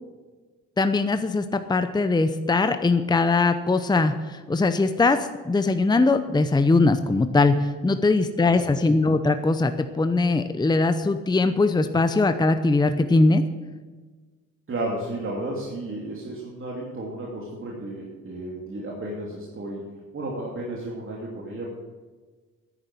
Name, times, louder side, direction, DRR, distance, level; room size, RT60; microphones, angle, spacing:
voice 1, 0.8-13.4, left 3 dB, 15° left, 9 dB, 0.8 m, -21 dB
voice 2, 8.4-8.9 14.7-21.7, right 1 dB, 45° right, -3 dB, 2.9 m, -33 dB
10.5 x 9.9 x 7.6 m, 1.4 s
cardioid pair, 80°, 30 cm